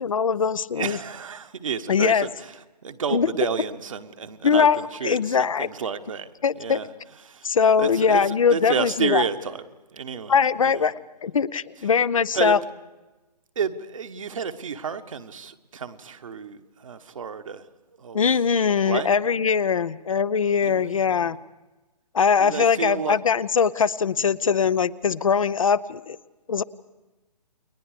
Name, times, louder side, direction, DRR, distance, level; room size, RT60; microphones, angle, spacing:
voice 1, 0.0-1.0 1.9-2.3 3.1-3.3 4.4-5.7 6.4-6.8 7.4-9.2 10.3-10.9 11.2-12.6 18.1-21.4 22.1-26.2 26.5-26.6, left 6 dB, 50° left, 17 dB, 0.7 m, -21 dB
voice 2, 0.8-9.6 9.9-10.9 11.8-11.9 12.3-12.6 13.5-17.7 18.0-18.2 18.6-19.1 20.6-21.4 22.4-23.2 24.2-24.4, right 6 dB, 50° right, 8 dB, 1.3 m, -31 dB
29.5 x 21.5 x 5.0 m, 1.1 s
figure-of-eight pair, 135°, 21 cm